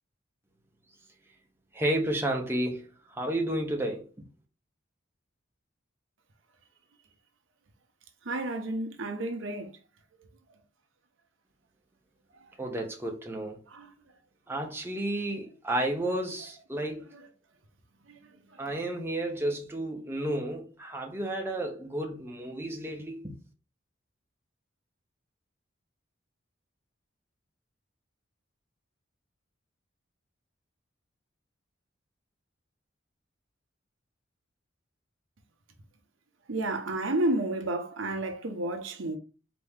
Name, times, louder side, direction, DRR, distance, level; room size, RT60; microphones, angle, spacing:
voice 1, 1.7-4.1 12.6-13.6 14.5-17.1 18.6-23.4, right 1 dB, 10° right, 0.9 m, -32 dB
voice 2, 8.2-9.8 10.2-10.3 12.4-12.5 13.7-13.9 17.1-17.2 18.1-18.6 36.5-39.2, right 1 dB, 85° right, 0.8 m, -32 dB
4.2 x 3.0 x 3.6 m
head